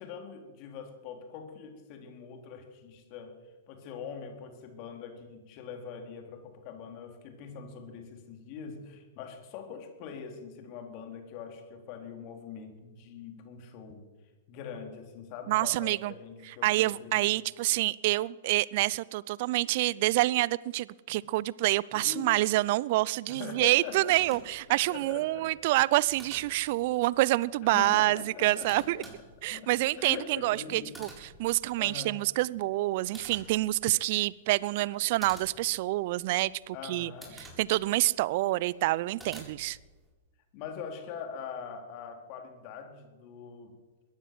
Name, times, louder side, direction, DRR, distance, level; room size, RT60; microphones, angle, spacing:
voice 1, 0.0-3.3 3.7-14.1 14.5-17.2 21.9-22.3 23.3-24.4 24.9-25.5 27.7-29.1 29.4-30.9 31.8-32.1 34.9-35.0 36.7-37.4 40.5-43.8, left 6 dB, 45° left, 4.1 m, -43 dB
voice 2, 15.5-16.1 16.6-29.0 29.4-37.1 37.4-39.8, right 18 dB, 50° right, 0.6 m, -27 dB
sound 1, 23.9-40.1, right 1 dB, 5° right, 7.6 m, -53 dB
21.0 x 15.5 x 7.9 m
hypercardioid pair, 105°, 0 cm